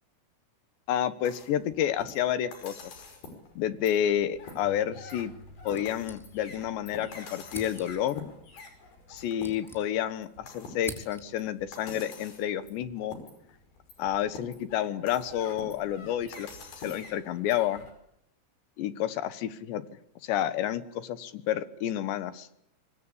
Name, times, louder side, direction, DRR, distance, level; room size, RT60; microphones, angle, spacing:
voice 1, 0.9-2.7 3.6-5.3 5.6-8.3 9.1-13.2 14.0-16.5 16.8-17.8 18.8-19.8 20.2-22.5, left 11 dB, 70° left, 13 dB, 3.4 m, -30 dB
sound 1, 1.2-17.9, left 3 dB, 50° left, 7.3 m, -47 dB
Keyboard (musical), 4.6-9.1, left 1 dB, 60° right, 3.4 m, -54 dB
sound 2, 5.7-6.7 7.0-7.1 7.5-8.2 9.0-10.3 10.5-11.5, equal, ahead, 4.9 m, -45 dB
25.0 x 24.0 x 8.6 m, 0.73 s
omnidirectional pair, 5.6 m